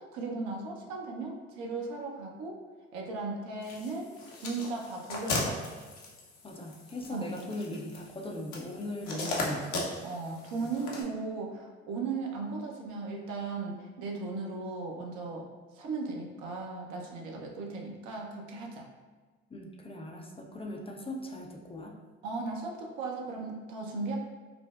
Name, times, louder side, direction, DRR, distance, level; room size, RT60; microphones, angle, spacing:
voice 1, 0.0-2.6 2.9-5.6 7.1-7.5 9.1-9.5 10.0-15.5 15.7-18.9 22.2-24.2, right 3 dB, 65° right, -1 dB, 0.7 m, -37 dB
sound 1, 3.6-11.0, left 2 dB, 60° left, 0.9 m, -37 dB
voice 2, 6.4-9.8 10.6-10.7 19.5-21.9, left 1 dB, 20° left, 0 dB, 0.5 m, -39 dB
4.9 x 2.0 x 2.4 m, 1.4 s
hypercardioid pair, 60°, 32 cm